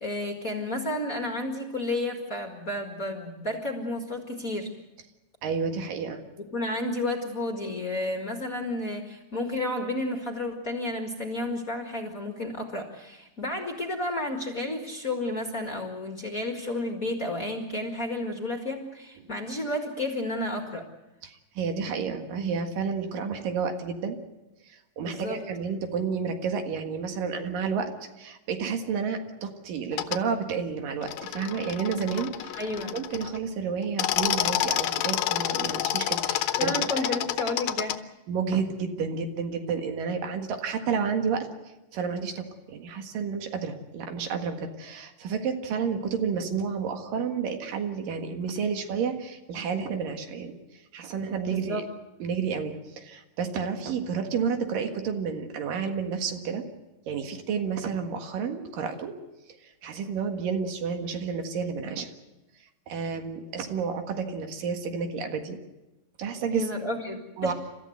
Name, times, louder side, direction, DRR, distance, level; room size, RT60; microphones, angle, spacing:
voice 1, 0.0-4.7 6.4-20.8 25.0-25.4 32.5-33.0 36.6-38.0 51.5-51.9 66.5-67.5, left 1 dB, 30° left, 3 dB, 1.8 m, -31 dB
voice 2, 5.4-6.2 21.2-24.2 24.7-27.9 28.2-32.6 32.9-37.2 38.3-41.5 41.9-50.6 50.9-51.8 52.2-56.6 57.1-59.1 59.6-62.1 62.9-65.6 66.2-66.7 67.4-67.5, right 6 dB, 80° right, 5 dB, 3.4 m, -30 dB
sound 1, 29.9-30.2 31.0-33.4 33.8-38.0, left 12 dB, 85° left, 2.6 m, -29 dB
30.0 x 14.0 x 8.0 m, 1.0 s
omnidirectional pair, 3.9 m